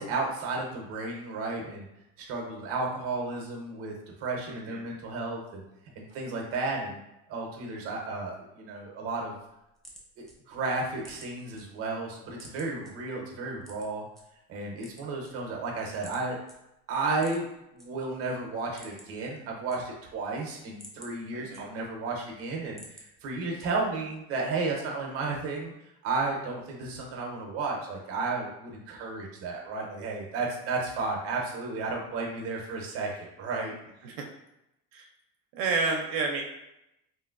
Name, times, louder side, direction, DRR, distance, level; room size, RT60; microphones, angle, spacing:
voice 1, 0.0-1.9 2.2-5.6 6.0-7.0 7.3-9.4 10.2-14.1 14.5-16.4 16.9-17.5 17.7-25.7 26.0-33.7, right 3 dB, 45° right, 0 dB, 0.8 m, -33 dB
voice 2, 4.5-4.8 21.3-21.7 34.0-34.3 34.9-35.1 35.5-36.4, right 4 dB, 85° right, 0 dB, 0.6 m, -30 dB
sound 1, 9.7-11.6 12.0-12.9 13.6-14.2 14.7-15.7 16.0-16.2 16.5-16.6 17.1-17.9 18.2-18.3 18.6-19.2 19.5-20.2 20.6-22.0 22.4-23.1 23.6-24.0, equal, ahead, 0.3 m, -51 dB
3.1 x 2.5 x 2.4 m, 0.85 s
cardioid pair, 140°, 32 cm